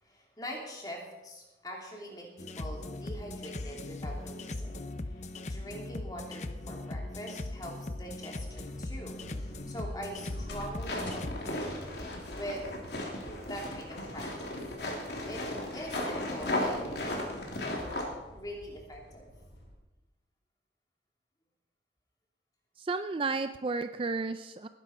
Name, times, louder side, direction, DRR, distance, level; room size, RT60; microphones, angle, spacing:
voice 1, 0.0-11.9 12.3-12.8 13.4-14.6 15.3-15.4 15.7-16.8 18.3-19.3, equal, 20° left, -1 dB, 2.9 m, -43 dB
sound 1, 2.4-11.6, left 2 dB, 40° left, 0.7 m, -39 dB
sound 2, 8.4-19.7, equal, 85° left, 4.5 m, -49 dB
sound 3, 10.8-18.0, left 1 dB, 65° left, 3.1 m, -35 dB
voice 2, 22.8-24.7, right 4 dB, 30° right, 10 dB, 0.4 m, -32 dB
19.0 x 10.5 x 4.4 m, 1.1 s
head